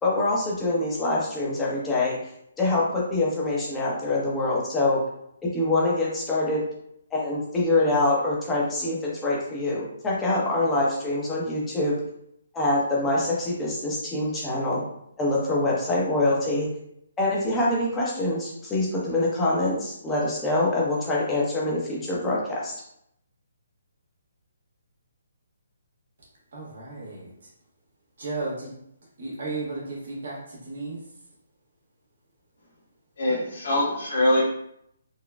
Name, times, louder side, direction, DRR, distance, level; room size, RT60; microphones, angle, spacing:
voice 1, 0.0-2.2 2.6-5.0 5.5-6.6 7.1-11.9 12.5-14.8 15.2-16.7 17.2-22.7, left 2 dB, 10° left, -5 dB, 0.8 m, -25 dB
voice 2, 26.5-27.3 28.2-28.7 29.2-31.0, right 3 dB, 65° right, -4 dB, 1.4 m, -34 dB
voice 3, 33.2-34.4, left 1 dB, 65° left, -5 dB, 1.4 m, -23 dB
4.0 x 2.2 x 2.3 m, 0.74 s
hypercardioid pair, 155°, 0 cm